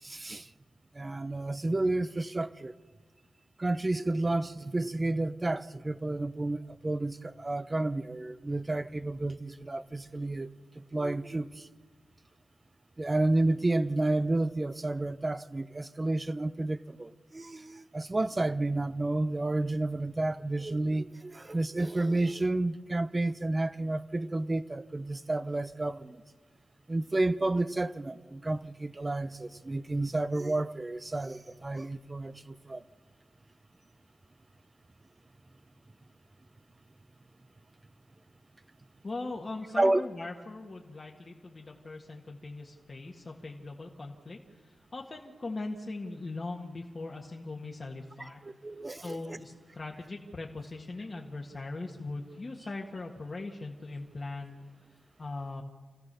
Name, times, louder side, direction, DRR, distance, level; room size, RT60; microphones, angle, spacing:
voice 1, 0.0-0.5 0.9-2.7 3.6-10.5 10.8-11.7 13.0-26.2 26.9-32.8 39.7-40.1 48.2-49.4, right 2 dB, 25° right, 0.8 m, -31 dB
voice 2, 39.0-48.4 49.0-54.6 55.2-55.6, left 2 dB, 35° left, 1.8 m, -40 dB
29.0 x 14.5 x 6.9 m
cardioid pair, 85°, 0 cm